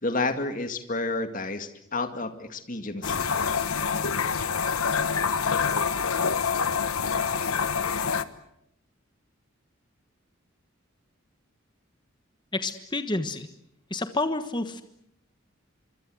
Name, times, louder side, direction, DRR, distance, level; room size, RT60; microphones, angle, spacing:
voice 1, 0.0-3.3 4.1-4.2, left 3 dB, 40° left, 8 dB, 2.2 m, -30 dB
sound 1, 3.0-8.2, left 6 dB, 80° left, 1.3 m, -26 dB
voice 2, 12.5-13.5 13.9-14.8, left 2 dB, 20° left, 9 dB, 1.3 m, -29 dB
25.5 x 24.5 x 7.8 m, 0.76 s
head